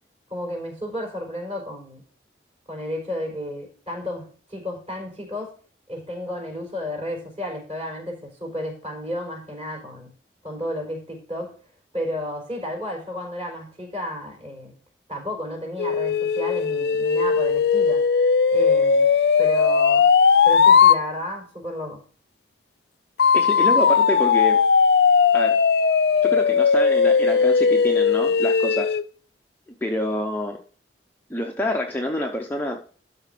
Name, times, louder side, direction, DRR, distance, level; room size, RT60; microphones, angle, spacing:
voice 1, 0.3-2.0 2.7-5.5 5.9-10.1 10.4-11.5 11.9-14.7 15.1-18.0 18.5-19.1 19.4-20.0 20.4-22.0, left 1 dB, 30° right, -1 dB, 5.0 m, -32 dB
sound 1, 15.8-21.0 23.2-29.0, left 6 dB, 55° left, 0.4 m, -18 dB
voice 2, 23.3-24.6 25.3-25.6 26.2-28.9 29.8-30.6 31.3-32.8, left 1 dB, 10° left, 1 dB, 0.7 m, -27 dB
12.5 x 4.3 x 5.2 m, 0.41 s
head